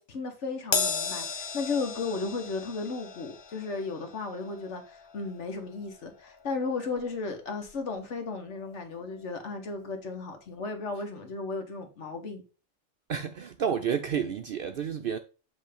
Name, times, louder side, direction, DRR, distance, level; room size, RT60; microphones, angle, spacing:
voice 1, 0.0-12.4, left 4 dB, 65° left, 1.5 m, -35 dB
Crash cymbal, 0.7-7.3 7.7-7.9 8.9-9.0, left 4 dB, 30° left, 0.5 m, -36 dB
voice 2, 13.1-15.2, right 7 dB, 60° right, 0.6 m, -30 dB
8.0 x 3.2 x 5.0 m
omnidirectional pair, 1.3 m